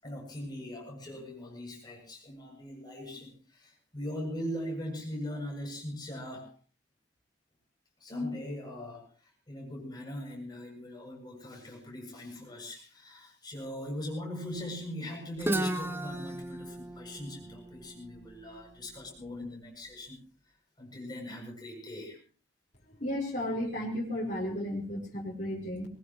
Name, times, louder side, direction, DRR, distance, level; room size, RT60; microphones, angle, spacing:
voice 1, 0.0-6.5 8.0-9.1 9.5-20.2 20.8-22.2, left 1 dB, 25° left, -1 dB, 7.7 m, -40 dB
Guitar, 15.4-19.2, right 1 dB, 15° right, 1.1 m, -35 dB
voice 2, 22.8-25.9, left 1 dB, 45° left, -3 dB, 5.0 m, -34 dB
22.0 x 20.5 x 3.2 m, 0.37 s
head